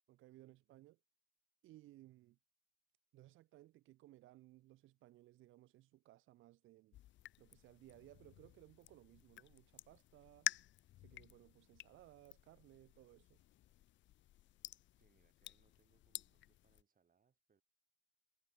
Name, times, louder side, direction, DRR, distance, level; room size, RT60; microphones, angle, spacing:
voice 1, 0.1-1.0 1.6-2.4 3.1-7.0 7.4-10.5 11.0-13.4, right 16 dB, 80° right, 0.7 m, -62 dB
sound 1, 6.9-16.8, left 14 dB, 70° left, 0.5 m, -50 dB
voice 2, 15.0-17.6, right 6 dB, 45° right, 4.3 m, -78 dB
cardioid pair, 90°, 20 cm